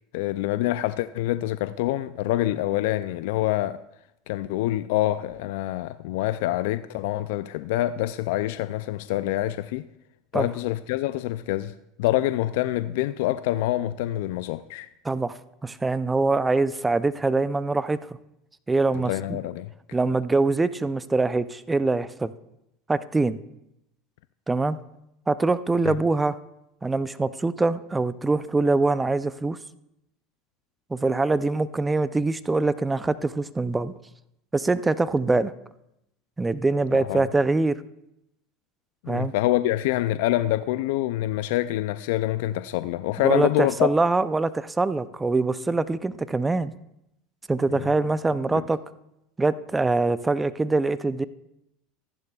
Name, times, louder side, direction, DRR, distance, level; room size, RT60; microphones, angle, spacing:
voice 1, 0.1-3.8 4.3-9.9 10.3-14.9 18.9-19.7 25.8-25.9 36.9-37.3 39.0-43.9 47.7-47.9 48.5-48.6, left 15 dB, 70° left, 0.3 m, -26 dB
voice 2, 15.0-18.0 18.7-19.4 19.9-22.3 22.9-23.4 24.5-24.8 25.3-26.4 26.8-29.6 30.9-33.9 34.5-35.5 36.4-37.8 39.1-39.3 43.2-46.7 47.5-48.8 49.4-51.3, right 3 dB, 15° right, 0.4 m, -24 dB
14.5 x 11.0 x 2.3 m
hypercardioid pair, 95°, 0 cm